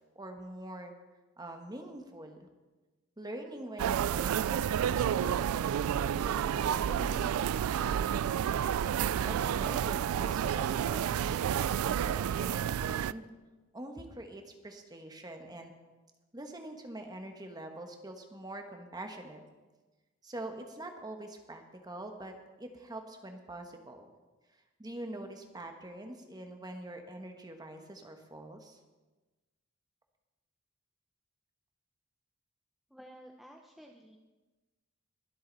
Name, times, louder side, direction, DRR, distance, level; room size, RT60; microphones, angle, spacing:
voice 1, 0.1-0.9 1.4-2.5 3.2-7.5 9.2-13.3 13.7-15.7 16.3-19.4 20.2-24.1 24.8-28.8, right 1 dB, 20° right, 5 dB, 1.3 m, -44 dB
sound 1, 3.8-13.1, right 9 dB, 90° right, 0.3 m, -30 dB
voice 2, 32.9-34.2, equal, ahead, 1 dB, 0.7 m, -52 dB
22.0 x 7.8 x 4.0 m, 1.2 s
head